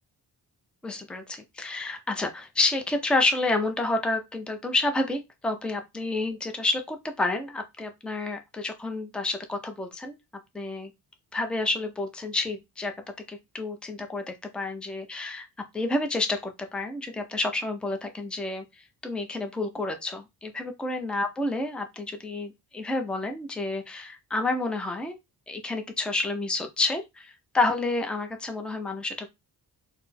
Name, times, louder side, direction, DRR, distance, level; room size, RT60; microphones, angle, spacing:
voice 1, 0.8-10.2 10.5-10.9 11.3-12.9 13.3-15.5 15.7-18.6 19.0-25.2 25.5-29.3, left 2 dB, ahead, 0.5 m, -29 dB
4.1 x 2.1 x 4.1 m
wide cardioid pair, 130°, 41 cm